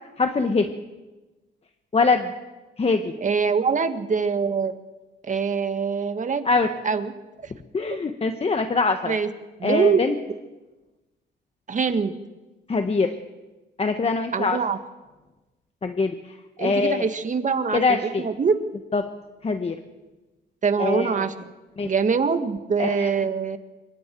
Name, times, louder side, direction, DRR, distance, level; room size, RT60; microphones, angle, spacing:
voice 1, 0.2-0.7 1.9-2.3 2.8-3.1 6.4-6.7 7.7-9.2 9.6-10.2 12.7-13.1 13.8-14.6 15.8-17.1 17.7-18.2 18.9-19.0 19.4-19.8 20.8-21.2 21.8-21.9 22.8-23.1, left 4 dB, 30° left, 6 dB, 1.3 m, -23 dB
voice 2, 3.2-4.7 5.3-6.5 6.8-7.1 7.4-7.5 9.0-9.3 9.6-10.0 11.7-12.1 14.3-14.8 16.6-18.6 20.6-21.3 21.8-23.6, right 5 dB, 40° right, 9 dB, 1.7 m, -23 dB
25.5 x 22.5 x 4.6 m, 1.1 s
cardioid pair, 90°, 20 cm